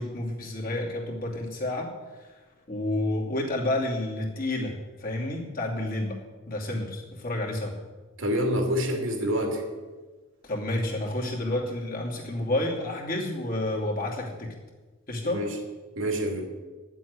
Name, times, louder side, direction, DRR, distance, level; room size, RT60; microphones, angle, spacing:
voice 1, 0.0-1.9 2.7-6.2 6.5-7.7 10.4-14.5 15.1-15.4, left 1 dB, 45° left, -2 dB, 2.7 m, -30 dB
voice 2, 8.2-9.6 15.3-15.5 16.0-16.4, equal, 80° right, 2 dB, 2.8 m, -27 dB
11.0 x 7.5 x 9.5 m, 1.3 s
head